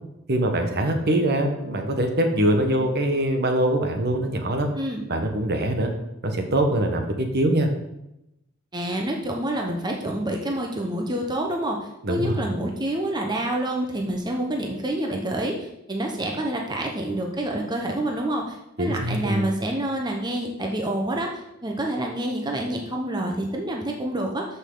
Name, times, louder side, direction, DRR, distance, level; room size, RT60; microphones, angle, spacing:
voice 1, 0.3-4.7 5.1-5.9 6.2-7.7 12.0-12.4 18.8-19.5, right 1 dB, 50° right, 5 dB, 1.3 m, -23 dB
voice 2, 8.7-24.5, right 1 dB, 20° right, 1 dB, 1.0 m, -28 dB
13.0 x 5.6 x 3.9 m, 0.86 s
head